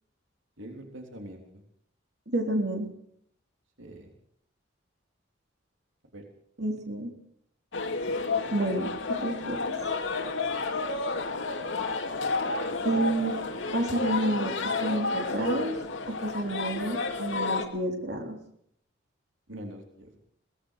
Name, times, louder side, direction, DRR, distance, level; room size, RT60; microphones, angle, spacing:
voice 1, 0.6-1.4 3.8-4.1 6.1-6.2 19.5-20.2, right 1 dB, 75° right, 3 dB, 3.4 m, -43 dB
voice 2, 2.3-2.9 6.6-7.1 8.5-8.9 9.2-9.7 12.8-13.3 13.7-14.5 14.8-15.7 16.1-18.4, right 1 dB, 55° right, 2 dB, 3.7 m, -29 dB
sound 1, 7.7-17.7, left 3 dB, 75° left, 2.4 m, -31 dB
22.5 x 18.5 x 6.5 m, 0.69 s
head